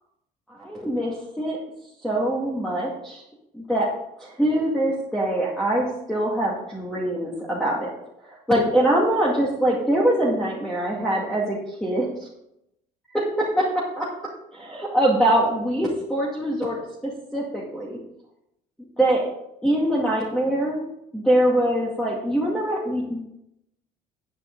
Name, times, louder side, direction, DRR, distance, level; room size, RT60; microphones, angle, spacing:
voice 1, 0.5-1.6 2.0-3.2 3.5-3.9 4.2-7.9 8.3-12.1 13.1-14.1 14.5-18.0 19.0-19.2 19.6-20.8 21.1-23.2, right 1 dB, 5° left, -4 dB, 2.3 m, -23 dB
10.0 x 9.1 x 3.9 m, 0.81 s
cardioid pair, 110°, 17 cm